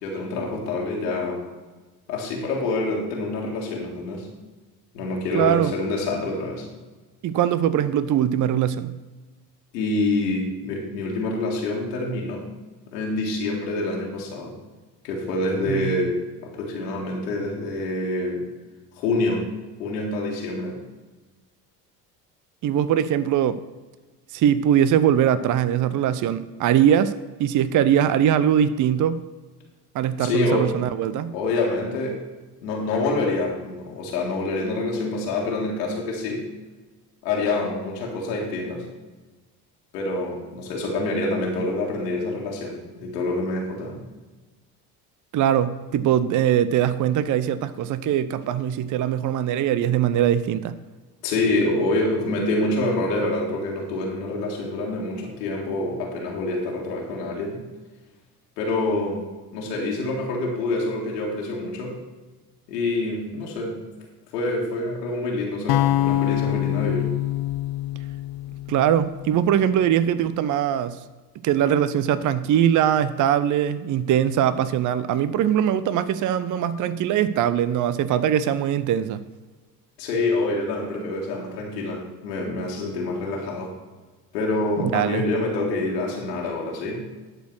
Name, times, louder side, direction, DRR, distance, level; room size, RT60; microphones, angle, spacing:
voice 1, 0.0-1.4 2.1-4.3 4.9-6.7 9.7-12.4 12.9-14.5 15.0-18.4 19.0-19.5 19.8-20.8 30.2-30.7 31.3-32.2 32.6-36.4 37.2-38.9 39.9-44.0 51.2-57.6 58.6-59.2 59.5-62.0 62.7-63.8 64.3-67.1 80.0-83.7 84.3-87.0, left 2 dB, 80° left, -2 dB, 1.9 m, -26 dB
voice 2, 5.3-5.7 7.2-9.0 15.6-16.1 22.6-23.6 24.3-29.2 29.9-31.3 45.3-50.7 68.7-71.0 71.4-79.2 84.8-85.2, right 10 dB, 40° right, 15 dB, 0.6 m, -21 dB
sound 1, 65.7-69.8, left 14 dB, 50° left, 0.6 m, -25 dB
11.5 x 4.5 x 6.1 m, 1.3 s
hypercardioid pair, 55°, 49 cm